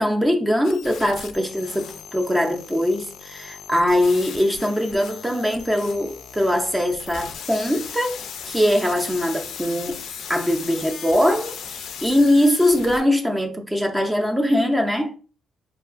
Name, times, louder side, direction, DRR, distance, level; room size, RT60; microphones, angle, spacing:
voice 1, 0.0-8.2 8.4-10.0 10.3-15.1, left 1 dB, 10° right, 0.4 m, -21 dB
sound 1, 0.6-13.0, left 7 dB, 70° left, 0.3 m, -37 dB
2.4 x 2.3 x 2.4 m
cardioid pair, 90°, 0 cm